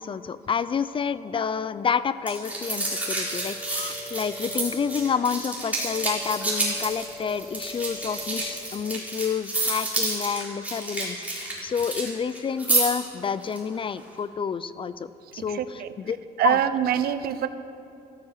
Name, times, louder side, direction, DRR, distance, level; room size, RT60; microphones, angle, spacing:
voice 1, 0.0-16.2 16.4-16.6, left 6 dB, 30° left, 15 dB, 0.5 m, -29 dB
sound 1, 2.3-12.1 12.3-13.0 13.4-13.6, right 2 dB, 10° right, 4.6 m, -29 dB
sound 2, 2.4-8.6, left 1 dB, 85° right, 3.8 m, -43 dB
voice 2, 15.5-15.9 16.4-17.5, right 10 dB, 65° right, 12 dB, 0.8 m, -24 dB
14.5 x 13.5 x 6.6 m, 2.6 s
cardioid pair, 110°, 17 cm